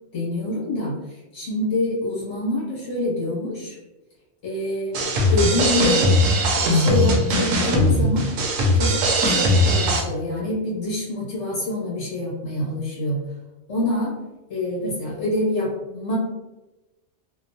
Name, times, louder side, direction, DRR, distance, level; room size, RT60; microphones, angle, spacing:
voice 1, 0.1-3.8 4.4-4.9 5.3-6.1 6.5-8.3 8.7-13.2 13.7-14.1 14.5-16.2, left 2 dB, 75° left, -6 dB, 1.3 m, -26 dB
sound 1, 4.9-10.0, equal, 80° right, 0.9 m, -19 dB
2.8 x 2.1 x 2.5 m, 1.1 s
omnidirectional pair, 1.3 m